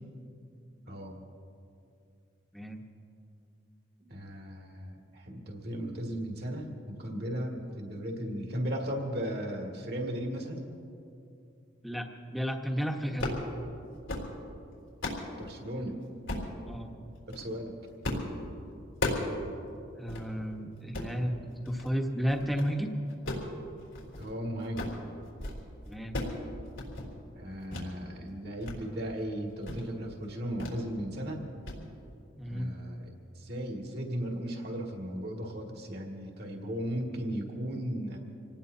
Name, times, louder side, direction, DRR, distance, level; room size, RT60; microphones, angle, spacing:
voice 1, 0.8-1.2 4.1-10.6 15.4-16.0 17.3-17.7 24.2-24.8 27.4-31.4 32.5-33.1 33.4-38.2, equal, 55° right, 0 dB, 2.2 m, -36 dB
voice 2, 11.8-13.4 16.7-16.9 20.0-22.9 25.9-26.2 32.4-32.7, equal, ahead, 1 dB, 1.2 m, -33 dB
sound 1, 13.1-13.5 13.9-14.3 14.7-15.3 16.3-16.5 17.2-17.5 18.0-18.3 18.6-19.3 19.7-19.8 20.1-20.3 20.8-21.1 21.6-21.9 22.3-22.7 23.1-24.3 24.6-25.0 25.3-25.6 25.9-26.4 26.7-27.1 27.7-27.9 28.3-28.8 29.1-29.2 29.6-29.9 30.6-30.8 31.1-31.3 31.7-31.8, left 2 dB, 90° left, 3.8 m, -35 dB
27.0 x 19.0 x 2.8 m, 2.6 s
head